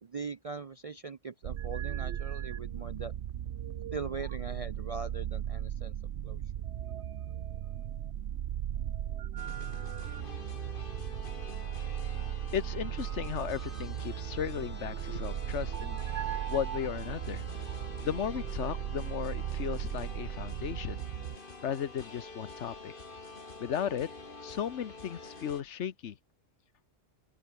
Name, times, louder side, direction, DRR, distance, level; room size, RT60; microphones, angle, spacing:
voice 1, 0.0-3.1 3.9-5.9 6.2-6.4, right 4 dB, 45° right, 0.5 m, -40 dB
sound 1, 1.4-21.4, right 10 dB, 65° right, 0.9 m, -37 dB
sound 2, 9.4-25.6, left 3 dB, 45° left, 2.6 m, -47 dB
voice 2, 12.5-16.0 16.5-17.4 18.0-21.0 21.6-22.9 23.6-24.1 24.4-26.2, left 9 dB, 70° left, 1.2 m, -35 dB
open air
omnidirectional pair, 1.3 m